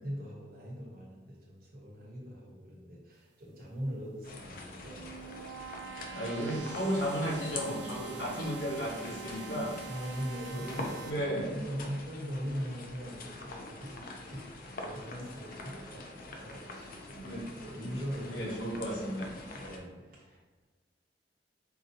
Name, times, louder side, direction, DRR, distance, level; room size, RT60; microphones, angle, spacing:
voice 1, 0.0-5.1 9.9-17.3 17.6-18.8 19.5-20.4, equal, 55° right, -3 dB, 1.1 m, -41 dB
sound 1, 4.2-19.8, left 2 dB, 55° left, 0.5 m, -45 dB
sound 2, 4.6-11.1, right 7 dB, 70° right, 0.3 m, -45 dB
voice 2, 6.1-9.7 10.5-11.5 17.2-17.5 18.2-19.3, equal, 85° left, -5 dB, 1.1 m, -34 dB
4.7 x 2.6 x 2.7 m, 1.3 s
head